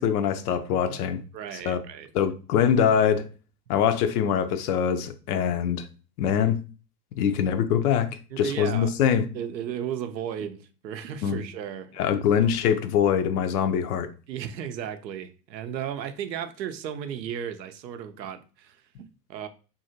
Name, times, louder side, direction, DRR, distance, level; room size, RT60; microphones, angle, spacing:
voice 1, 0.0-1.2 1.6-1.8 2.1-3.3 3.7-5.9 6.2-6.6 7.2-8.1 8.4-9.2 11.2-11.4 12.0-14.1, left 8 dB, 65° left, 0.6 m, -23 dB
voice 2, 1.3-2.1 8.3-9.0 9.3-12.5 14.3-19.5, right 9 dB, 85° right, 0.6 m, -35 dB
2.8 x 2.6 x 2.7 m
figure-of-eight pair, 80°, 50 cm